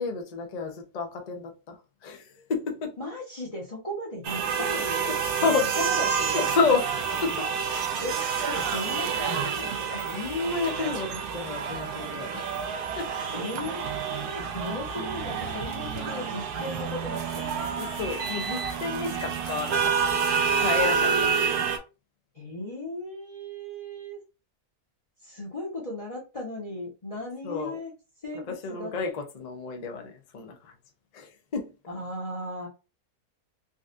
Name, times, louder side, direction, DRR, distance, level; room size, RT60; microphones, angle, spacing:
voice 1, 0.0-3.0 5.0-5.8 6.3-7.0 7.2-7.5 10.0-12.5 13.0-13.1 17.8-21.2 27.4-27.8 28.3-30.7 31.1-31.7, left 4 dB, 60° left, 0.4 m, -30 dB
voice 2, 3.0-5.1 5.4-5.5 5.8-6.4 8.0-10.1 12.9-17.7 22.3-24.2 25.3-27.9 28.2-28.9 31.9-32.7, left 1 dB, 25° left, 0.9 m, -36 dB
sound 1, 4.2-21.8, right 6 dB, 80° right, 1.1 m, -28 dB
3.9 x 2.4 x 2.5 m
omnidirectional pair, 1.6 m